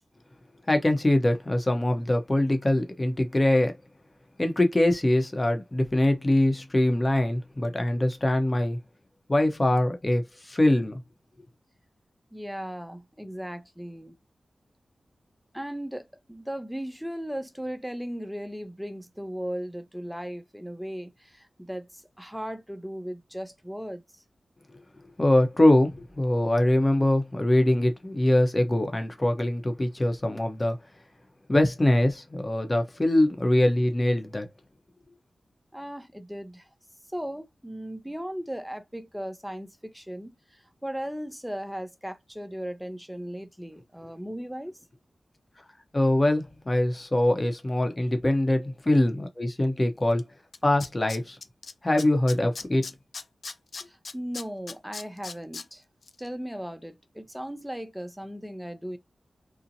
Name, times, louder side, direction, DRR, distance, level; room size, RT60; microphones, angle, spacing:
voice 1, 0.7-3.8 4.4-8.8 9.3-11.0 25.2-30.8 31.5-34.5 45.9-50.2 50.6-51.4 51.8-52.9, left 1 dB, 30° left, 0.8 m, -23 dB
voice 2, 12.3-14.2 15.5-24.0 35.7-36.7 37.1-44.8 53.9-55.8 56.2-59.0, equal, 5° right, 0.6 m, -37 dB
Tools, 50.2-50.3 50.5-51.7 52.0-55.6 56.0-56.1, left 4 dB, 75° left, 0.3 m, -38 dB
2.7 x 2.1 x 2.7 m
cardioid pair, 50°, 0 cm